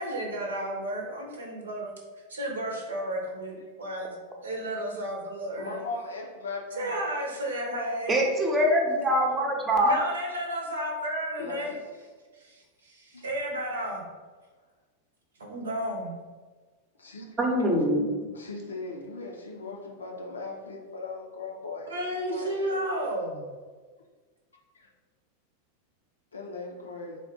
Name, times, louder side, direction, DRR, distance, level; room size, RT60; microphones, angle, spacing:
voice 1, 0.0-2.0 2.3-5.8 6.8-8.2 9.8-11.7 12.4-14.1 15.4-16.2 17.9-18.3 21.9-23.4, right 1 dB, 70° right, 1 dB, 0.8 m, -33 dB
voice 2, 5.6-6.9 11.4-11.8 13.1-13.2 17.0-17.4 18.3-22.8 24.7-24.9 26.3-27.2, left 3 dB, 70° left, 0 dB, 0.6 m, -39 dB
voice 3, 8.1-9.9 17.4-18.1, equal, 20° right, 0 dB, 0.8 m, -23 dB
3.9 x 2.4 x 3.7 m, 1.4 s
figure-of-eight pair, 90°, 0 cm